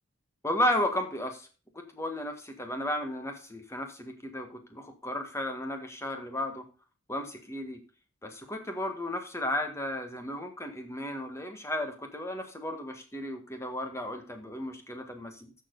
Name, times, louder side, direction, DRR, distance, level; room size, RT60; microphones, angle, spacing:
voice 1, 0.4-1.5 1.9-6.6 7.1-7.8 8.2-15.5, left 1 dB, 15° left, 5 dB, 1.8 m, -34 dB
13.5 x 7.0 x 4.0 m, 0.35 s
head